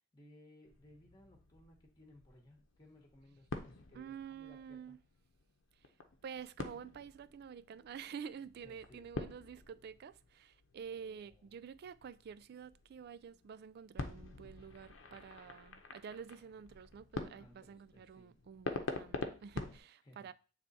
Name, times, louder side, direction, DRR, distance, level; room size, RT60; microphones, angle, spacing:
voice 1, 0.1-5.0 8.6-9.2 10.9-11.5 17.4-18.3 20.0-20.3, left 1 dB, 20° left, 1.0 m, -62 dB
sound 1, 0.6-19.8, left 3 dB, 75° left, 0.7 m, -47 dB
voice 2, 3.9-5.0 6.2-20.3, right 7 dB, 55° right, 0.3 m, -49 dB
7.6 x 3.3 x 4.0 m
head